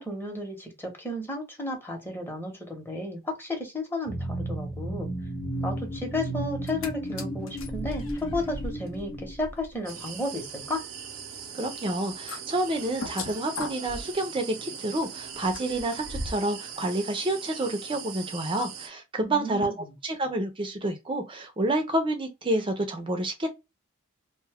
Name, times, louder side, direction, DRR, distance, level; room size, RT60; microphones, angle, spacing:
voice 1, 0.0-5.1 5.6-10.8 19.2-19.9, left 1 dB, 10° left, 0.9 m, -33 dB
sound 1, 4.1-9.6, right 1 dB, 40° left, 0.8 m, -34 dB
sound 2, 6.5-6.9 7.2-16.5 16.9-17.0, left 2 dB, 70° left, 0.6 m, -40 dB
sound 3, 9.9-18.9, right 7 dB, 75° right, 0.7 m, -40 dB
voice 2, 11.5-19.7 20.0-23.5, right 1 dB, 25° right, 0.5 m, -29 dB
2.6 x 2.2 x 3.4 m
head